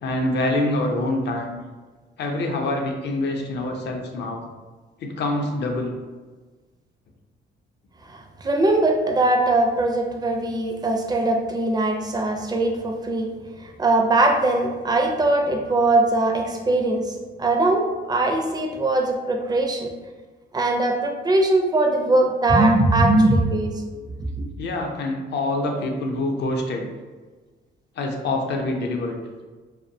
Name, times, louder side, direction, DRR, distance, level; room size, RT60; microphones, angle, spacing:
voice 1, 0.0-1.6 2.2-4.4 5.0-5.9 24.6-26.9 28.0-29.2, left 2 dB, 60° left, 2 dB, 0.5 m, -25 dB
voice 2, 8.1-13.3 13.6-17.1 17.4-19.9 20.5-23.8, right 2 dB, 20° right, 2 dB, 0.4 m, -21 dB
2.5 x 2.1 x 2.6 m, 1.3 s
cardioid pair, 90°, 20 cm